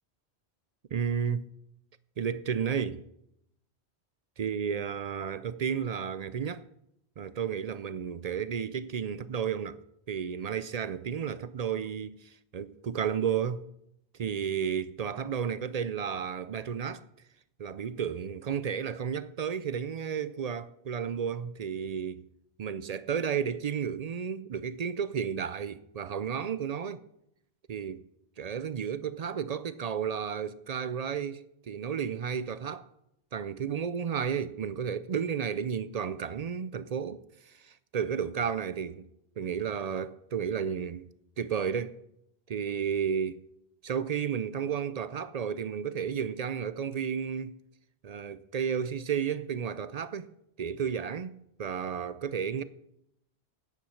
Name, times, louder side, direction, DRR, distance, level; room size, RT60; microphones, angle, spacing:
voice 1, 0.9-1.5 2.2-3.0 4.4-6.6 7.2-9.8 10.1-13.7 14.2-17.0 17.6-22.3 22.6-27.0 27.7-28.0 28.4-32.9 33.3-39.1 39.4-41.1 41.4-42.0 42.5-43.4 43.8-47.6 48.0-50.3 50.6-52.6, right 7 dB, 55° right, 0.4 m, -32 dB
10.0 x 8.6 x 6.4 m
omnidirectional pair, 1.1 m